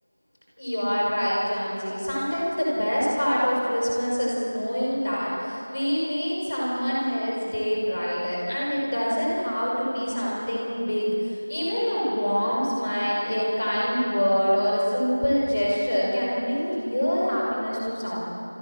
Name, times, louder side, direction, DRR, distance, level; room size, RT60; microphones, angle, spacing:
voice 1, 0.6-18.2, equal, 30° left, -5 dB, 7.0 m, -25 dB
30.0 x 15.5 x 7.6 m, 2.9 s
figure-of-eight pair, 175°, 0 cm